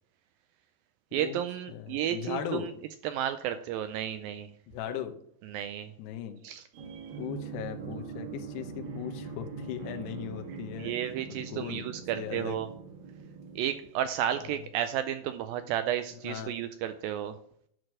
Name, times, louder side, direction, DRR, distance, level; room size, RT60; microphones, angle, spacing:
voice 1, 1.1-2.7 3.0-4.5 5.4-5.9 6.4-7.2 10.8-12.7 13.6-17.4, right 11 dB, 85° right, 10 dB, 2.0 m, -32 dB
voice 2, 1.7-2.7 4.7-5.2 6.0-6.4 7.2-10.9 11.3-11.9 12.1-12.6 16.2-16.5, left 10 dB, 85° left, 6 dB, 3.0 m, -38 dB
sound 1, 6.7-14.3, right 6 dB, 55° right, 2.4 m, -42 dB
11.0 x 4.7 x 6.2 m, 0.65 s
omnidirectional pair, 4.6 m